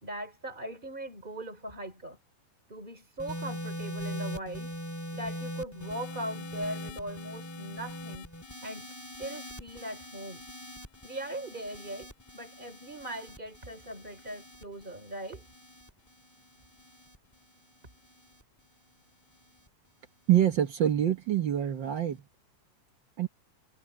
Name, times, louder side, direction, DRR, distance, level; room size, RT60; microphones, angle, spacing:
voice 1, 0.0-2.2 2.7-4.8 5.1-8.3 8.6-8.9 9.2-10.4 11.0-15.5, right 1 dB, 15° right, 3.2 m, -40 dB
sound 1, 3.2-19.7 20.6-20.9, equal, 5° left, 2.2 m, -42 dB
voice 2, 20.3-22.2 23.2-23.3, right 11 dB, 65° right, 1.1 m, -25 dB
omnidirectional pair, 3.7 m